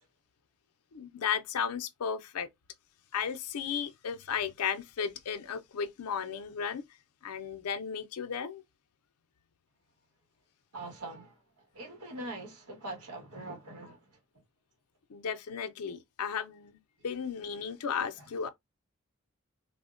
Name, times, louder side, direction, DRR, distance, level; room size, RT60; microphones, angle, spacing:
voice 1, 0.9-2.5 3.1-6.8 7.2-8.6 15.1-18.5, left 7 dB, 90° left, 0.5 m, -34 dB
voice 2, 10.7-14.1, right 2 dB, 85° right, 1.2 m, -43 dB
3.5 x 2.1 x 2.4 m
head